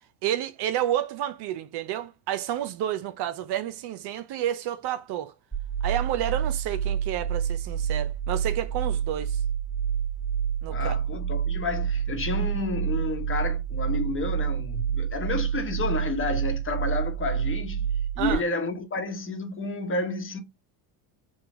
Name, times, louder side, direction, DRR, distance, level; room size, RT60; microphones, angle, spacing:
voice 1, 0.2-5.3 5.8-9.4 10.6-10.9 18.2-18.4, right 11 dB, 55° right, 0.7 m, -30 dB
sound 1, 5.5-18.4, right 8 dB, 5° right, 1.8 m, -28 dB
voice 2, 10.7-17.9 18.2-20.4, left 3 dB, 25° left, 1.1 m, -30 dB
5.2 x 2.3 x 3.7 m
supercardioid pair, 90°, 47 cm